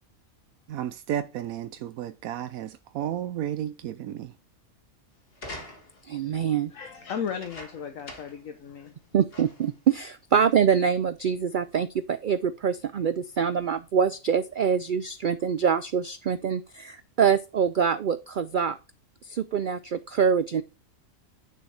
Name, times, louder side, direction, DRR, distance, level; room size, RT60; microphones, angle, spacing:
voice 1, 0.7-4.4, right 11 dB, 85° right, 1.1 m, -33 dB
sound 1, 5.3-6.1 7.2-8.5 8.8-8.9 9.3-9.8 10.5-10.6, left 2 dB, 45° left, 1.7 m, -43 dB
voice 2, 6.1-6.7 9.1-18.8 19.2-20.6, right 7 dB, 65° right, 0.5 m, -25 dB
voice 3, 6.7-8.9, left 7 dB, 75° left, 1.3 m, -35 dB
10.5 x 6.4 x 3.3 m
omnidirectional pair, 1.4 m